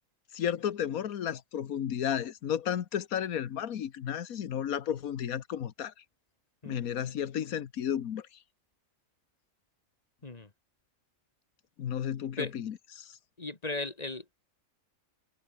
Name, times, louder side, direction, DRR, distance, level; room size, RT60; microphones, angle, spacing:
voice 1, 0.3-5.9 6.6-8.3 11.8-13.1, left 9 dB, 85° left, 1.5 m, -33 dB
voice 2, 13.4-14.2, left 2 dB, 30° left, 1.6 m, -36 dB
omnidirectional pair, 1.5 m